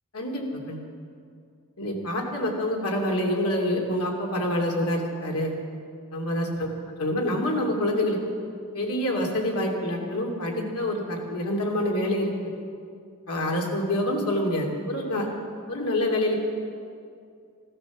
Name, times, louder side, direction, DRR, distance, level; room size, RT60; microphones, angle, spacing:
voice 1, 0.1-0.8 1.8-5.5 6.1-6.7 7.0-8.2 8.7-12.5 13.3-15.3 15.7-16.3, left 1 dB, 85° left, 0 dB, 2.7 m, -26 dB
15.0 x 12.0 x 7.2 m, 2.3 s
head